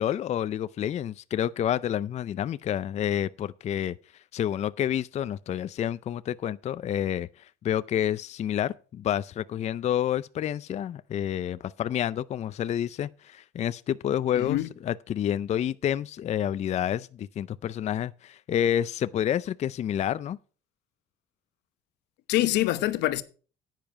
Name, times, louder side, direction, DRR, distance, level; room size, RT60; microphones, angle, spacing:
voice 1, 0.0-20.4, left 10 dB, 40° left, 0.4 m, -29 dB
voice 2, 14.4-14.7 22.3-23.2, left 16 dB, 90° left, 0.9 m, -25 dB
10.5 x 9.1 x 4.7 m
cardioid pair, 110°, 17 cm